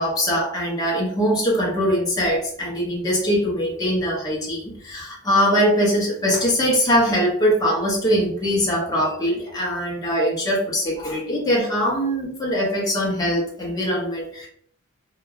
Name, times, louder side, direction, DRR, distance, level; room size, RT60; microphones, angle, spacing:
voice 1, 0.0-14.5, equal, 15° left, -4 dB, 0.6 m, -22 dB
2.8 x 2.2 x 2.4 m, 0.63 s
head